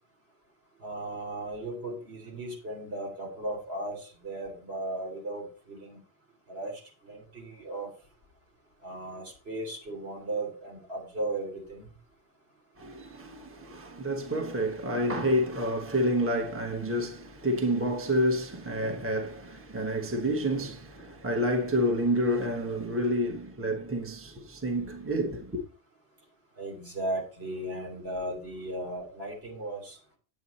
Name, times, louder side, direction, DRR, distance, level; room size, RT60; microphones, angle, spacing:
voice 1, 0.8-6.0 6.5-7.9 8.8-11.9 26.6-30.0, right 1 dB, 70° right, 3.5 m, -36 dB
voice 2, 12.8-25.6, equal, 10° right, 1.2 m, -29 dB
9.3 x 7.9 x 4.1 m
omnidirectional pair, 1.1 m